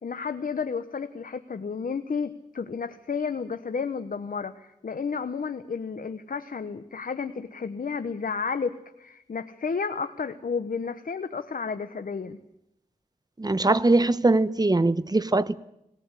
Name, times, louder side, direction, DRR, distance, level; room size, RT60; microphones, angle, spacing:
voice 1, 0.0-12.4, left 5 dB, 65° left, 9 dB, 1.0 m, -32 dB
voice 2, 13.4-15.6, right 2 dB, 25° right, 14 dB, 1.0 m, -21 dB
20.5 x 18.5 x 8.2 m, 0.83 s
wide cardioid pair, 65°, 15 cm